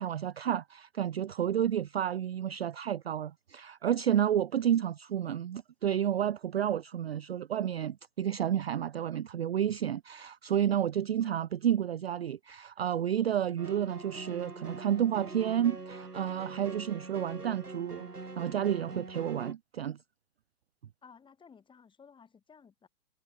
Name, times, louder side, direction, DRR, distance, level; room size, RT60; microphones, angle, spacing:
voice 1, 0.0-18.1 18.4-20.0, right 10 dB, 40° right, 0.5 m, -31 dB
sound 1, 13.6-19.5, right 3 dB, 80° right, 3.8 m, -43 dB
voice 2, 21.0-22.9, left 6 dB, 10° left, 7.9 m, -56 dB
figure-of-eight pair, 120°, 46 cm